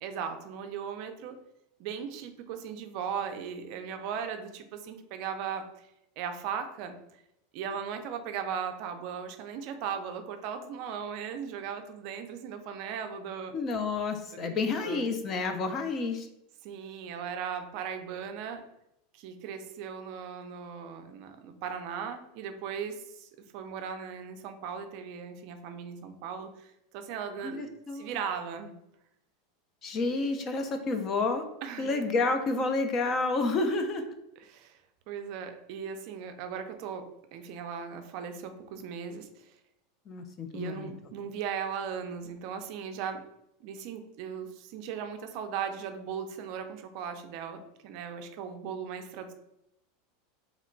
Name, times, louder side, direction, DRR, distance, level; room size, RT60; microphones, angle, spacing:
voice 1, 0.0-1.4 1.8-5.9 6.2-6.9 7.5-13.6 14.3-15.1 16.6-18.6 19.1-27.7 27.9-28.7 31.6-31.9 34.4-34.8 35.1-39.5 40.5-43.2 43.6-49.3, right 7 dB, 45° right, 6 dB, 0.4 m, -38 dB
voice 2, 13.5-16.3 27.4-28.1 29.8-31.4 31.8-34.0 40.1-40.9, left 3 dB, 25° left, 7 dB, 0.3 m, -30 dB
2.9 x 2.2 x 3.8 m, 0.81 s
supercardioid pair, 165°, 0 cm